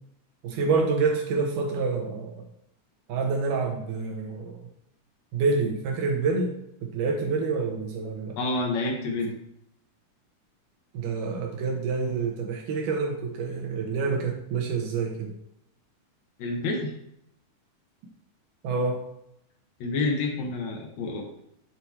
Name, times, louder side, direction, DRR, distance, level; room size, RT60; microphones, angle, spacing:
voice 1, 0.4-2.4 3.1-4.6 5.3-6.5 6.9-8.4 10.9-15.3 18.6-19.0, right 4 dB, 85° right, 1 dB, 2.7 m, -27 dB
voice 2, 8.4-9.3 16.4-16.9 19.8-21.4, left 2 dB, 70° left, 1 dB, 2.1 m, -28 dB
7.8 x 2.9 x 4.6 m, 0.76 s
omnidirectional pair, 3.6 m